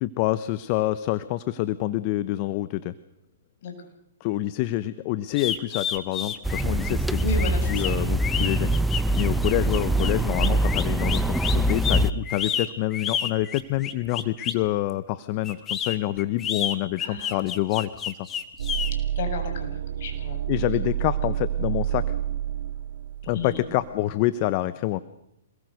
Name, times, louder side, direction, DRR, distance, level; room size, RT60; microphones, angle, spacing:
voice 1, 0.0-2.9 4.2-7.2 7.7-8.7 9.2-18.2 20.5-22.1 23.3-25.0, left 16 dB, 40° left, 15 dB, 1.0 m, -27 dB
sound 1, 5.3-14.7 15.4-18.9, left 8 dB, 20° left, 2.1 m, -30 dB
sound 2, 6.4-12.1, right 1 dB, ahead, 0.8 m, -23 dB
voice 2, 7.2-7.9 17.0-17.6 19.2-20.4 20.7-20.8 23.3-23.6, left 4 dB, 55° left, 4 dB, 7.4 m, -34 dB
sound 3, 18.6-24.0, right 11 dB, 75° right, 2.5 m, -29 dB
27.0 x 21.0 x 6.6 m, 0.80 s
hypercardioid pair, 140°, 0 cm